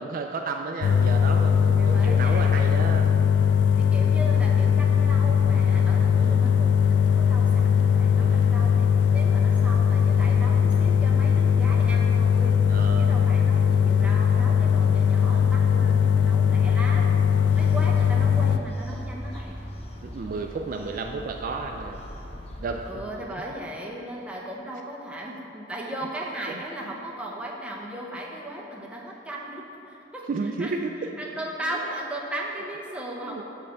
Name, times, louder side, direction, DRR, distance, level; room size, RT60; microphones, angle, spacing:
voice 1, 0.0-3.1 6.1-6.6 8.0-8.6 12.7-13.2 17.6-17.8 20.0-22.0 22.6-23.3 26.5-26.6 30.3-31.1 33.2-33.4, right 4 dB, 50° right, 3 dB, 0.3 m, -33 dB
sound 1, 0.8-18.6, left 7 dB, 70° left, 0.3 m, -20 dB
voice 2, 1.8-2.5 3.8-8.7 9.1-12.6 13.0-17.1 17.6-19.6 22.9-30.3 30.6-30.7 31.0-33.4, right 1 dB, 5° right, -3 dB, 0.8 m, -37 dB
sound 2, 17.3-22.9, left 1 dB, 35° left, 0.7 m, -42 dB
8.2 x 3.3 x 6.5 m, 2.8 s
head